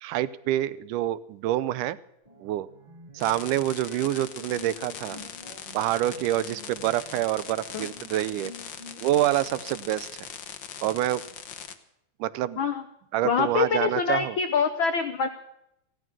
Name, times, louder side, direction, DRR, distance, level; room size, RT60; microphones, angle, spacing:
voice 1, 0.0-2.0 2.4-2.7 3.1-5.2 5.7-8.5 9.0-10.1 10.8-11.2 12.2-12.6 13.1-14.4, right 14 dB, 90° right, 17 dB, 2.3 m, -27 dB
sound 1, 2.2-9.4, left 1 dB, 25° right, 0.8 m, -49 dB
sound 2, 3.2-11.7, left 8 dB, 65° left, 1.1 m, -41 dB
voice 2, 13.2-15.3, left 5 dB, 85° left, 9 dB, 1.1 m, -25 dB
15.5 x 13.0 x 6.0 m, 0.80 s
omnidirectional pair, 3.6 m